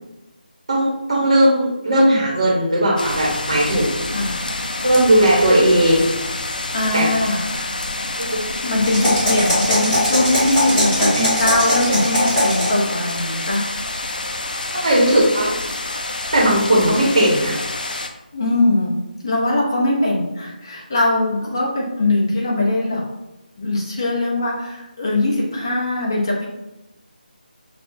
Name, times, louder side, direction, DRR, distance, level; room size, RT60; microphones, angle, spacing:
voice 1, 0.7-3.9 4.8-6.1 6.9-7.1 8.2-8.3 11.0-11.3 14.8-15.6 16.3-17.6, right 1 dB, 40° right, -4 dB, 1.0 m, -17 dB
sound 1, 3.0-18.1, left 2 dB, 60° left, 0.5 m, -28 dB
voice 2, 6.7-7.7 8.6-13.7 18.3-19.0 19.2-23.0 23.6-26.5, left 2 dB, 25° left, -3 dB, 0.7 m, -21 dB
sound 2, 8.8-12.8, left 1 dB, 10° left, 1.4 m, -20 dB
6.3 x 2.3 x 2.6 m, 0.96 s
figure-of-eight pair, 180°, 5 cm